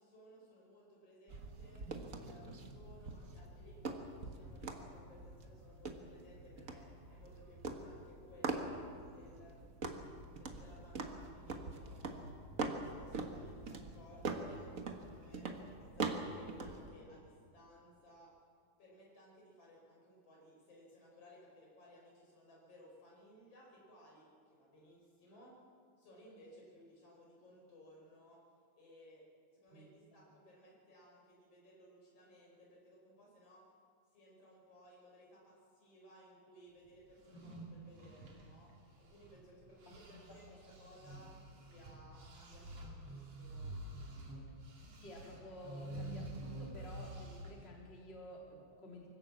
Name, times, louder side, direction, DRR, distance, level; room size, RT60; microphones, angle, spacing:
voice 1, 0.0-1.9 2.2-9.7 10.3-12.4 12.7-18.4 18.8-25.6 26.0-28.5 28.7-33.7 34.1-43.7, equal, 45° left, -2 dB, 6.1 m, -60 dB
sound 1, 1.3-16.9, right 3 dB, 85° right, 0.7 m, -44 dB
sound 2, 37.1-39.5 39.8-47.7, right 1 dB, 50° right, 3.7 m, -48 dB
voice 2, 40.1-40.6 44.8-49.1, equal, 20° left, -2 dB, 2.9 m, -52 dB
24.5 x 16.0 x 7.4 m, 2.3 s
omnidirectional pair, 3.9 m